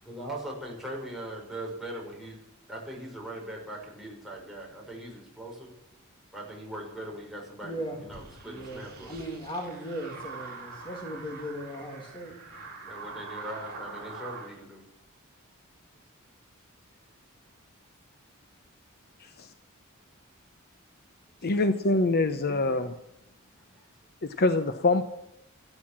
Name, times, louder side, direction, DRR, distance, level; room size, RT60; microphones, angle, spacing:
voice 1, 0.0-2.4 2.7-5.7 6.3-9.2 12.8-14.8 21.4-21.5 23.7-23.9 24.3-24.4, right 1 dB, ahead, -2 dB, 5.7 m, -40 dB
voice 2, 7.6-8.0 8.4-12.3, equal, 25° left, 1 dB, 2.4 m, -37 dB
sound 1, 8.1-14.5, right 4 dB, 45° right, 7.0 m, -44 dB
voice 3, 21.4-23.0 24.2-25.0, left 2 dB, 45° left, 9 dB, 0.9 m, -24 dB
14.5 x 13.0 x 7.6 m, 0.82 s
head